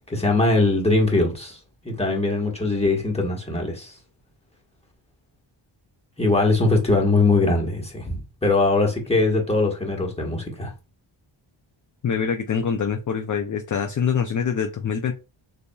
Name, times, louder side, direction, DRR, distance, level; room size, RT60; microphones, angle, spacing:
voice 1, 0.1-1.6 1.8-3.9 6.2-10.7, left 2 dB, 10° left, 1.4 m, -21 dB
voice 2, 12.0-15.1, left 7 dB, 40° left, 0.5 m, -24 dB
6.8 x 2.7 x 2.3 m
wide cardioid pair, 100°, 48 cm